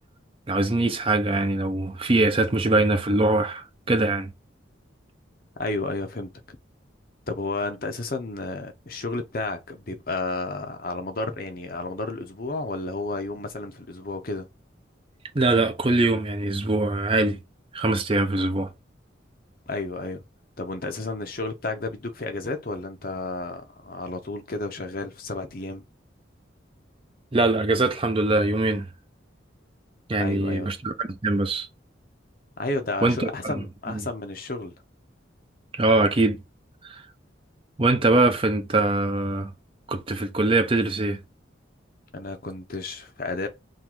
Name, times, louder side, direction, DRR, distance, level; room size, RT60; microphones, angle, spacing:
voice 1, 0.5-4.3 15.3-17.4 17.7-18.7 27.3-28.9 30.1-31.7 33.0-34.1 35.7-36.4 36.8-37.0 37.8-39.5 39.9-41.2, right 2 dB, 30° right, 0.6 m, -23 dB
voice 2, 5.6-6.3 7.3-14.4 19.7-20.2 20.6-25.8 30.2-30.7 32.6-34.7 42.1-43.5, left 2 dB, 50° left, 0.8 m, -32 dB
3.7 x 2.6 x 4.5 m
head